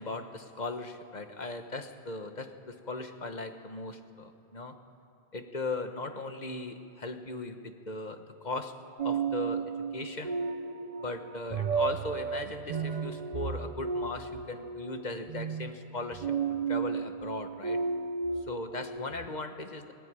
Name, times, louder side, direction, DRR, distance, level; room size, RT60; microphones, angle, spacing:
voice 1, 0.0-4.8 5.3-10.4 11.0-16.4 16.7-17.8 18.5-19.9, left 2 dB, 40° left, 7 dB, 1.4 m, -38 dB
sound 1, 9.0-19.3, right 5 dB, 45° right, 0.7 m, -34 dB
19.5 x 19.0 x 9.7 m, 2.4 s
omnidirectional pair, 1.1 m